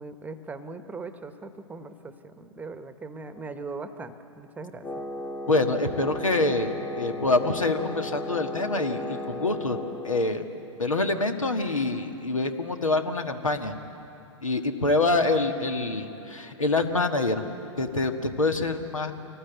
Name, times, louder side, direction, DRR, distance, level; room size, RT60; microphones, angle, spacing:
voice 1, 0.0-4.9, right 3 dB, 10° right, 10 dB, 1.0 m, -40 dB
Wind instrument woodwind instrument, 4.8-10.5, left 1 dB, 15° left, 1.2 m, -35 dB
voice 2, 5.5-9.8 10.0-10.5 10.8-13.7 14.4-17.4 17.8-19.1, left 2 dB, 90° left, 6 dB, 1.6 m, -26 dB
25.0 x 19.0 x 8.1 m, 2.8 s
figure-of-eight pair, 110°, 16 cm